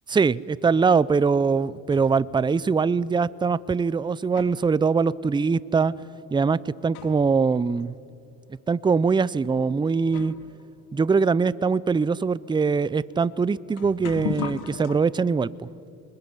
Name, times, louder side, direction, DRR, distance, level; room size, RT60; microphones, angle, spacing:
voice 1, 0.1-5.9 6.3-7.9 8.7-10.3 10.9-15.5, right 5 dB, 10° right, 20 dB, 0.5 m, -22 dB
sound 1, 1.7-2.3 3.2-3.3 4.0-7.4 7.7-7.8 8.6-8.8 9.6-9.7 10.0-15.0, left 11 dB, 85° left, 1.7 m, -40 dB
24.5 x 21.0 x 9.7 m, 2.6 s
supercardioid pair, 85°, 41 cm